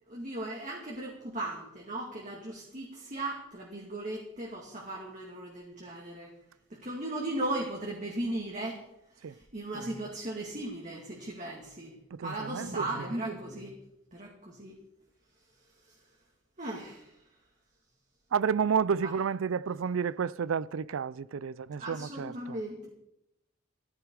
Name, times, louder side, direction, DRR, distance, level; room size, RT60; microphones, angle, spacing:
voice 1, 0.1-6.3 6.7-8.8 9.1-11.9 12.2-13.7 14.1-14.7 15.9-16.0 16.6-17.2 19.0-19.1 21.8-22.9, right 1 dB, 35° right, 2.4 m, -37 dB
voice 2, 12.1-12.9 18.3-22.6, right 6 dB, 90° right, 0.4 m, -30 dB
15.5 x 14.5 x 4.8 m
head